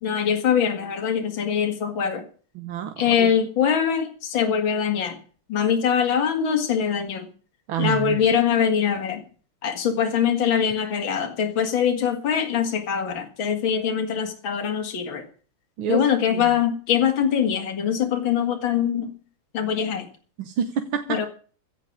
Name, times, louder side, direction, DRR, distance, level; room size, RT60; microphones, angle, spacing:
voice 1, 0.0-2.3 3.0-5.2 5.5-7.3 7.8-9.2 9.6-15.2 15.9-19.1 19.5-20.1 21.1-21.3, left 8 dB, 65° left, 5 dB, 2.7 m, -23 dB
voice 2, 2.6-3.3 7.7-8.2 15.8-16.5 20.4-21.3, right 8 dB, 70° right, 7 dB, 1.9 m, -28 dB
16.0 x 6.2 x 9.7 m, 0.41 s
omnidirectional pair, 2.3 m